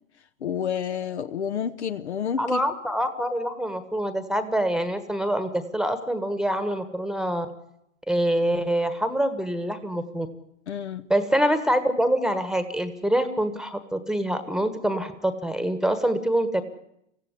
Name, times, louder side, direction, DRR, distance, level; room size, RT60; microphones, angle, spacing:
voice 1, 0.4-2.6 10.7-11.1, left 8 dB, 60° left, 10 dB, 1.2 m, -29 dB
voice 2, 2.4-7.5 8.1-10.3 11.1-16.6, right 1 dB, ahead, 11 dB, 1.4 m, -25 dB
24.5 x 16.0 x 9.8 m, 0.79 s
figure-of-eight pair, 100°, 37 cm